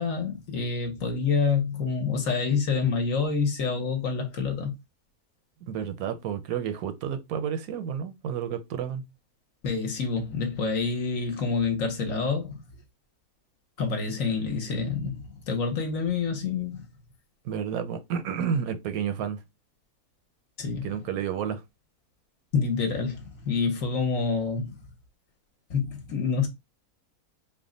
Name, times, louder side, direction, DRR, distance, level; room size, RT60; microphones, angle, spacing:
voice 1, 0.0-4.7 9.6-12.6 13.8-16.9 20.6-20.9 22.5-24.8 25.7-26.5, left 5 dB, 65° left, 1.3 m, -27 dB
voice 2, 5.6-9.0 17.4-19.4 20.8-21.6, right 8 dB, 80° right, 1.0 m, -30 dB
3.5 x 2.1 x 3.7 m
omnidirectional pair, 1.6 m